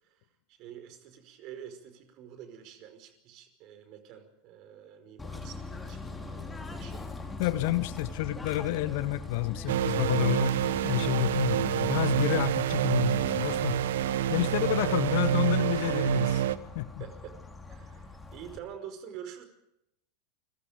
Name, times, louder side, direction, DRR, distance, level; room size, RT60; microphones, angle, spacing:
voice 1, 0.0-7.0 17.0-17.4 17.7-19.4, right 9 dB, 45° right, 9 dB, 5.2 m, -47 dB
Bird / Train, 5.2-18.6, left 3 dB, 10° left, 4.5 m, -43 dB
voice 2, 7.4-13.8 14.3-16.4 16.7-17.0, left 15 dB, 55° left, 12 dB, 1.6 m, -29 dB
sound 1, 9.7-16.6, right 11 dB, 60° right, 1.2 m, -27 dB
29.0 x 24.0 x 5.2 m, 0.83 s
figure-of-eight pair, 85°, 0 cm